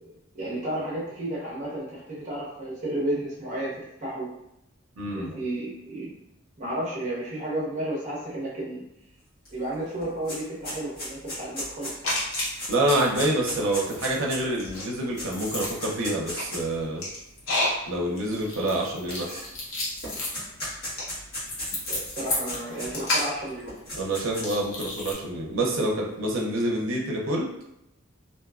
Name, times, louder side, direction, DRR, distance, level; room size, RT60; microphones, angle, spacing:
voice 1, 0.0-4.3 5.1-6.1 6.6-8.8 9.5-11.9 18.1-18.4 21.9-23.8, right 1 dB, 35° right, -6 dB, 0.8 m, -32 dB
voice 2, 5.0-5.4 12.7-17.0 17.8-19.4 23.9-27.5, right 1 dB, 70° right, -2 dB, 0.6 m, -27 dB
sound 1, 9.5-9.6 9.8-16.7 17.5-17.6 18.7-19.7 20.0-23.3 23.7-24.6, left 1 dB, 50° left, 1.3 m, -36 dB
sound 2, 12.0-13.3 13.5-25.1, left 1 dB, 75° left, 0.8 m, -31 dB
2.6 x 2.2 x 2.3 m, 0.84 s
head